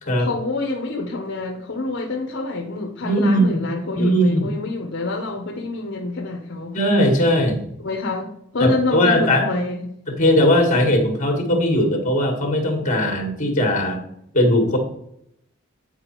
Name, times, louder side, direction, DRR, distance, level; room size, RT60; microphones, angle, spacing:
voice 1, 0.2-6.8 7.8-9.8, left 2 dB, 55° left, 1 dB, 0.8 m, -27 dB
voice 2, 3.0-3.6 4.0-4.5 6.7-7.6 8.6-9.4 10.2-14.0 14.3-14.8, equal, 35° left, 4 dB, 1.7 m, -19 dB
8.6 x 4.8 x 4.4 m, 0.75 s
head